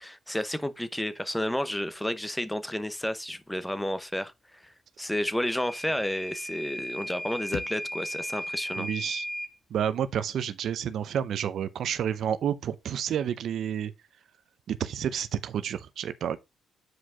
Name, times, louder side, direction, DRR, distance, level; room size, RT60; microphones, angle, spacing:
voice 1, 0.0-8.9, left 1 dB, 5° left, 0.8 m, -31 dB
Microwave oven / Alarm, 5.5-9.5, equal, 25° left, 1.3 m, -36 dB
sound 1, 7.5-10.4, left 7 dB, 65° left, 0.8 m, -45 dB
voice 2, 8.8-9.3 9.7-13.9 14.7-16.4, right 9 dB, 65° right, 0.7 m, -30 dB
7.8 x 5.0 x 3.7 m
cardioid pair, 90°, 0 cm